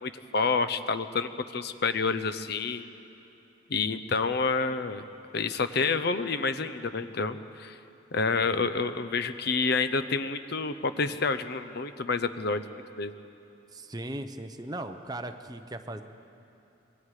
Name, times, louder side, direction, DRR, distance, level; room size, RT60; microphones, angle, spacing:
voice 1, 0.0-2.8 3.7-5.0 5.3-7.8 8.1-12.6 13.0-13.1, left 4 dB, 50° left, 11 dB, 0.7 m, -28 dB
voice 2, 8.3-8.7 13.7-16.0, right 1 dB, 20° right, 7 dB, 0.7 m, -38 dB
26.0 x 21.5 x 4.9 m, 2.9 s
head